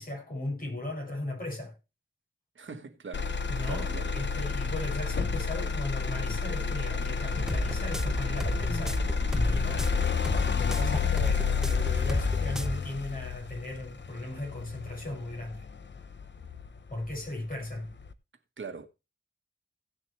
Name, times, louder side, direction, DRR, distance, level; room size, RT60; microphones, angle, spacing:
voice 1, 0.0-1.8 3.5-15.6 16.9-17.9, left 1 dB, 45° left, 6.7 m, -37 dB
voice 2, 2.5-3.4 3.7-4.2 18.6-18.9, right 5 dB, 70° right, 1.4 m, -41 dB
Motor vehicle (road), 3.1-17.1 17.6-18.1, left 6 dB, 65° left, 1.0 m, -30 dB
sound 1, 7.3-12.8, equal, 5° right, 0.4 m, -33 dB
17.0 x 6.7 x 3.2 m
wide cardioid pair, 105°, 21 cm